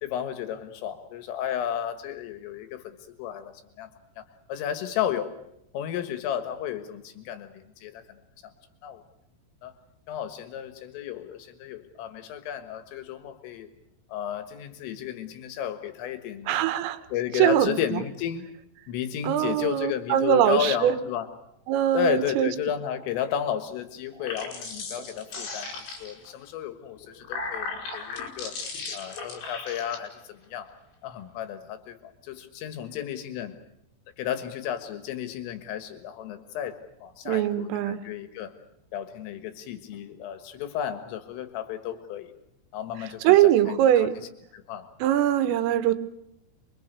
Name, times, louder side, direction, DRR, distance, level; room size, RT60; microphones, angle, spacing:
voice 1, 0.0-3.9 4.2-4.3 4.5-5.3 5.7-8.2 8.8-9.0 9.6-9.7 10.1-13.7 14.1-16.5 17.1-18.4 18.9-21.3 21.9-28.6 28.9-30.7 31.0-33.6 34.2-38.5 38.9-42.3 42.7-44.1 44.5-44.9, left 10 dB, 85° left, 8 dB, 4.1 m, -33 dB
voice 2, 16.5-17.0 17.3-18.0 19.2-20.9 21.7-22.5 37.3-38.0 43.3-44.2 45.0-45.9, right 11 dB, 85° right, 10 dB, 3.8 m, -22 dB
sound 1, 24.1-26.3 27.0-30.0, left 4 dB, 70° left, 7.4 m, -36 dB
28.5 x 23.5 x 6.8 m, 0.82 s
omnidirectional pair, 5.7 m